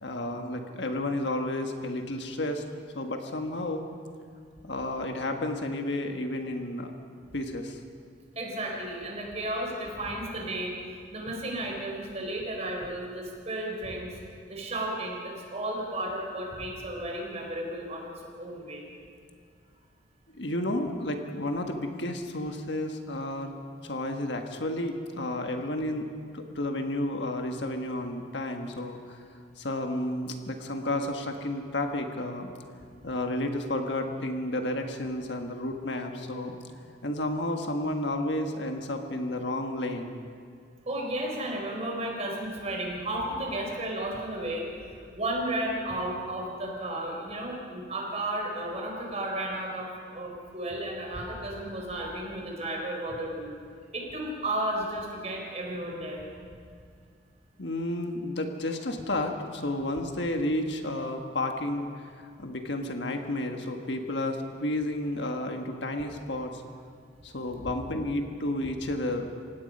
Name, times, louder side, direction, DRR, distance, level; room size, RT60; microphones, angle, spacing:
voice 1, 0.0-2.7 2.9-3.9 4.6-6.9 7.3-7.8 20.3-23.5 23.8-29.2 29.6-32.5 33.0-36.6 37.0-40.2 57.6-66.6 67.2-69.3, left 1 dB, 60° left, 4 dB, 1.6 m, -31 dB
voice 2, 8.4-10.8 11.1-14.2 14.5-18.1 18.4-18.8 40.9-44.9 45.1-53.5 53.9-56.2, right 1 dB, 35° right, 0 dB, 4.2 m, -33 dB
27.5 x 17.5 x 5.5 m, 2.2 s
head